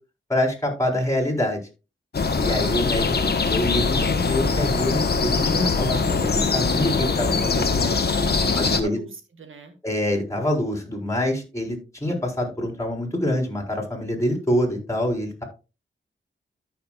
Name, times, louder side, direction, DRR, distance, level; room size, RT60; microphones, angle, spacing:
voice 1, 0.3-1.6 2.4-3.1 3.5-8.0 8.6-9.0 9.8-15.4, left 1 dB, 15° left, 1 dB, 4.2 m, -26 dB
sound 1, 2.1-8.8, left 4 dB, 55° left, 1.2 m, -22 dB
voice 2, 8.3-9.7, right 5 dB, 85° right, 6 dB, 1.9 m, -40 dB
13.5 x 6.0 x 2.4 m, 0.31 s
cardioid pair, 55°, 20 cm